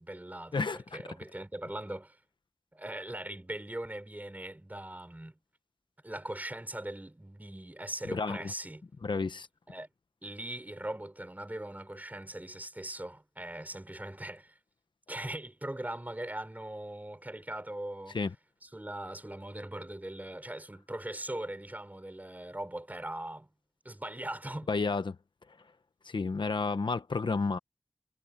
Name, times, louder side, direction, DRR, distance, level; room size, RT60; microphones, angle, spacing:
voice 1, 0.0-2.2 2.7-5.4 6.0-8.9 9.7-9.9 10.2-14.6 15.1-18.2 18.6-23.5 23.8-24.7, right 1 dB, 20° right, 5.4 m, -40 dB
voice 2, 0.5-0.8 8.1-8.5 9.0-9.5 18.1-18.3 24.7-25.2 26.0-27.6, left 4 dB, 70° left, 1.2 m, -31 dB
wide cardioid pair, 75°, 8 cm